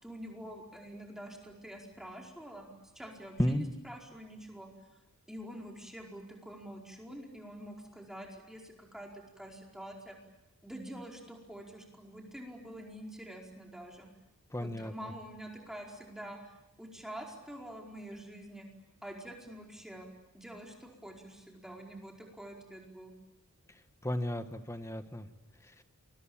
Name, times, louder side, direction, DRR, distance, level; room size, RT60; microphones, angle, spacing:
voice 1, 0.0-2.7 2.9-4.7 5.3-10.2 10.6-14.1 14.6-18.7 19.0-20.1 20.3-23.1, right 1 dB, ahead, 0 dB, 4.8 m, -46 dB
voice 2, 14.5-14.9 24.0-25.3 25.8-25.9, equal, 15° left, 9 dB, 1.4 m, -33 dB
28.5 x 22.5 x 8.8 m, 0.95 s
head